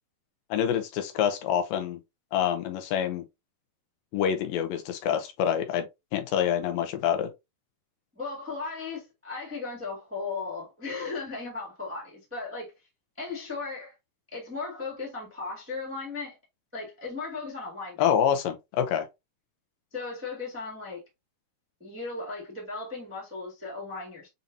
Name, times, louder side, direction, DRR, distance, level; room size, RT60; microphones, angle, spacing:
voice 1, 0.5-2.0 2.3-3.2 4.1-7.3 18.0-19.1, left 9 dB, 80° left, 2.3 m, -26 dB
voice 2, 8.1-12.7 13.2-14.0 14.3-16.4 16.7-18.1 19.9-21.0 21.8-24.3, left 4 dB, 10° right, 0.8 m, -36 dB
7.1 x 2.7 x 2.6 m
omnidirectional pair, 4.1 m